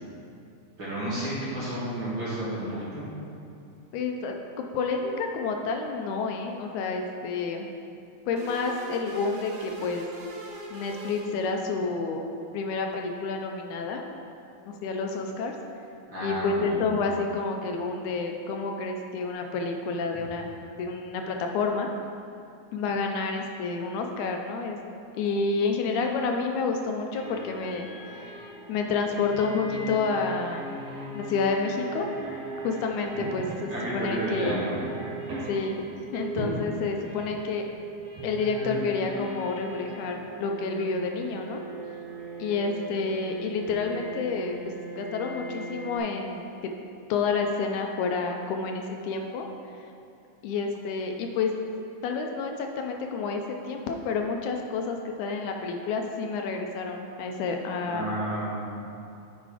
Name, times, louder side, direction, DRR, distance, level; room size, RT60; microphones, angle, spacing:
voice 1, 0.8-3.0 16.1-16.7 33.1-33.3 33.7-34.8 57.8-58.7, right 1 dB, 40° right, -10 dB, 2.6 m, -31 dB
voice 2, 3.9-7.7 8.3-10.1 10.7-12.3 12.5-14.0 14.7-15.5 16.2-20.5 20.8-21.9 22.7-24.8 25.2-28.4 28.7-30.7 31.1-32.1 32.6-34.6 35.5-37.6 38.2-41.6 42.4-46.5 47.1-49.5 50.4-51.5 52.0-58.1, left 4 dB, 80° left, 3 dB, 2.0 m, -29 dB
sound 1, 8.4-11.9, right 1 dB, 65° right, 1.4 m, -41 dB
sound 2, 27.1-46.0, right 1 dB, 85° right, 3.7 m, -38 dB
8.9 x 5.0 x 4.9 m, 2.6 s
omnidirectional pair, 3.5 m